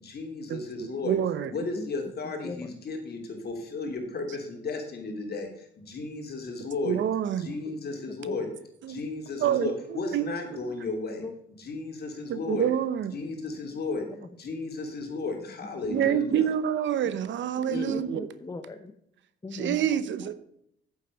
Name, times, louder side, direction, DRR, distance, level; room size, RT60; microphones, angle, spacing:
voice 1, 0.0-1.2 1.4-7.0 7.4-8.5 8.9-11.2 11.6-12.6 13.1-14.1 14.4-16.5 17.7-17.9, left 3 dB, 55° left, 3 dB, 3.1 m, -34 dB
voice 2, 1.0-1.5 6.8-7.5 8.8-9.0 9.4-10.3 12.3-13.1 15.9-18.3 19.5-20.3, right 10 dB, 70° right, 14 dB, 0.9 m, -27 dB
voice 3, 8.1-8.4 10.9-11.0 11.2-11.3 17.6-18.9 19.4-19.8, left 3 dB, 20° left, 6 dB, 0.9 m, -39 dB
8.8 x 7.6 x 5.2 m, 0.73 s
cardioid pair, 90°, 20 cm